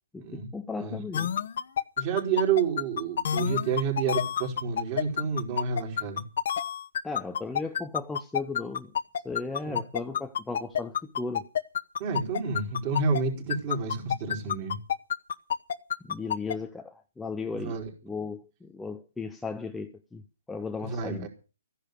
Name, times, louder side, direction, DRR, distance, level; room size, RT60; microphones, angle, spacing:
voice 1, 0.1-1.3 7.0-8.9 9.2-11.5 16.0-17.8 18.0-20.2 20.5-21.3, left 4 dB, 5° left, 0.6 m, -36 dB
sound 1, 1.1-13.2 13.5-16.5, left 9 dB, 55° left, 1.0 m, -28 dB
voice 2, 2.0-6.2 9.7-9.8 12.0-14.8 17.5-17.8 20.8-21.3, right 5 dB, 30° right, 4.3 m, -29 dB
15.0 x 10.5 x 6.7 m
hypercardioid pair, 160°, 0 cm